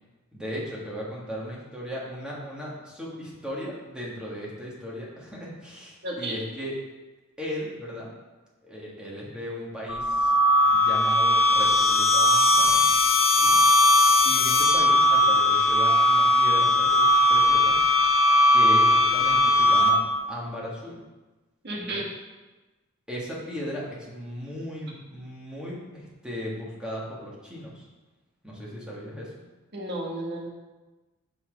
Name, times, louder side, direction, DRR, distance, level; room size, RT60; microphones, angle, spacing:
voice 1, 0.3-6.7 7.4-8.2 8.6-10.3 10.7-12.8 13.4-13.6 14.2-17.8 18.5-20.0 20.3-21.0 21.9-22.0 23.1-27.9 28.4-29.3, equal, 5° right, -6 dB, 1.7 m, -36 dB
voice 2, 6.0-6.4 21.6-22.1 29.7-30.5, right 1 dB, 55° right, -3 dB, 1.7 m, -32 dB
sound 1, 9.9-20.3, left 1 dB, 80° left, 0.7 m, -19 dB
6.0 x 5.7 x 5.1 m, 1.2 s
head